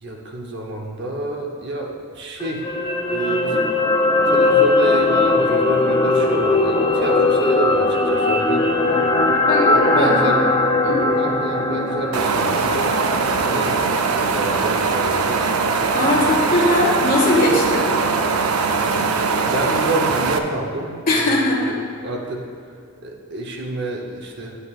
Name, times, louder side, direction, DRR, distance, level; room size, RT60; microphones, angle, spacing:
voice 1, 0.0-2.7 3.1-3.7 4.2-10.5 11.0-12.9 13.4-15.5 16.5-16.9 19.3-22.4 23.0-24.6, right 2 dB, 50° right, 0 dB, 0.8 m, -28 dB
sound 1, 2.4-14.7 15.1-15.2, left 2 dB, 20° left, 0.3 m, -19 dB
voice 2, 9.5-10.4 10.8-11.1 15.9-17.8 21.1-21.8, left 1 dB, 40° left, -5 dB, 1.8 m, -20 dB
sound 2, 12.1-20.4, right 4 dB, 80° right, 0.5 m, -21 dB
11.0 x 7.6 x 2.4 m, 2.4 s
head